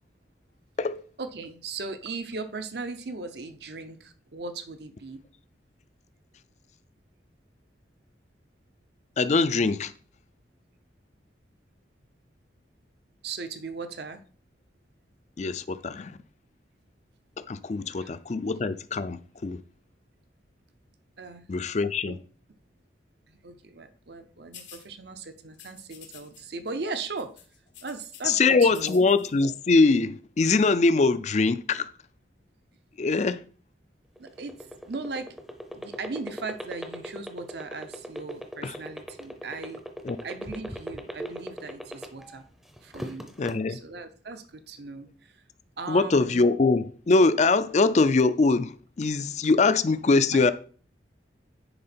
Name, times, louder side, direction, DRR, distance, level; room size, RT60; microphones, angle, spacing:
voice 1, 1.2-5.2 13.2-14.2 18.0-18.4 21.2-21.4 22.1-22.2 23.3-27.3 27.8-29.0 34.2-34.6 34.9-35.3 35.7-39.8 40.2-42.4 42.8-43.3 43.7-45.4 45.8-46.5 50.3-50.5, right 4 dB, 60° right, 0.7 m, -38 dB
voice 2, 9.2-9.9 15.4-16.2 17.4-19.6 21.5-22.2 28.2-31.9 33.0-33.4 38.6-38.8 40.0-40.2 43.4-43.8 45.9-50.5, left 3 dB, 40° left, 0.4 m, -23 dB
sound 1, 24.5-24.9 25.5-26.4 26.7-26.9 27.2-28.3 28.7-29.3, left 9 dB, 80° left, 1.3 m, -48 dB
sound 2, 34.2-42.4 42.8-43.5, equal, ahead, 0.6 m, -37 dB
10.0 x 3.8 x 4.4 m
head